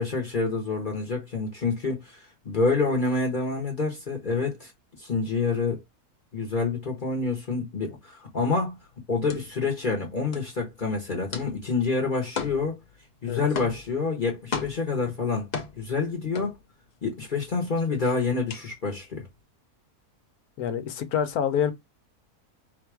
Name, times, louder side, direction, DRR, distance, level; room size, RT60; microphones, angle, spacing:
voice 1, 0.0-4.7 5.0-5.8 6.3-8.8 9.1-12.8 13.2-15.5 15.8-16.6 17.0-19.2, left 4 dB, 35° left, 1.0 m, -27 dB
sound 1, 8.4-17.1 17.5-19.3, left 5 dB, 55° left, 0.4 m, -37 dB
voice 2, 20.6-21.7, left 8 dB, 75° left, 1.2 m, -26 dB
4.0 x 2.5 x 4.6 m
omnidirectional pair, 1.6 m